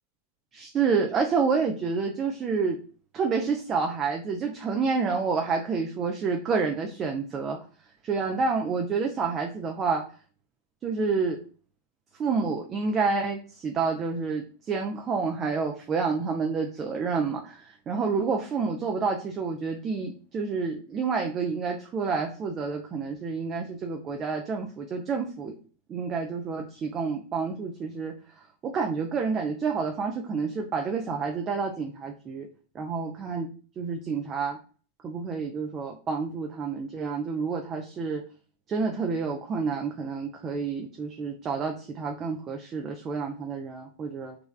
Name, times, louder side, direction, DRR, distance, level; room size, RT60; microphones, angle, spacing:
voice 1, 0.5-2.8 3.1-7.6 8.0-10.0 10.8-11.4 12.2-25.5 25.9-28.1 28.6-32.5 32.7-33.5 33.8-34.6 35.0-38.2 38.7-44.4, right 5 dB, 25° right, 2 dB, 0.4 m, -29 dB
3.1 x 2.3 x 2.3 m, 0.38 s
figure-of-eight pair, 90°, 0 cm